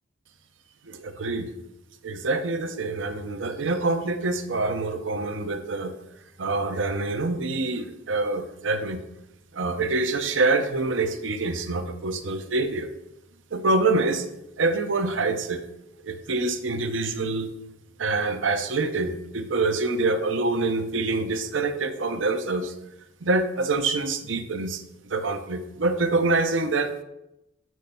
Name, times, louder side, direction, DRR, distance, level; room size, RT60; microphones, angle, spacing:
voice 1, 0.8-1.5 2.0-6.0 6.4-9.0 9.5-12.9 13.5-14.3 14.6-15.6 16.0-17.5 18.0-22.7 23.2-27.0, right 3 dB, 80° right, 8 dB, 0.8 m, -26 dB
6.4 x 6.3 x 6.8 m, 0.87 s
head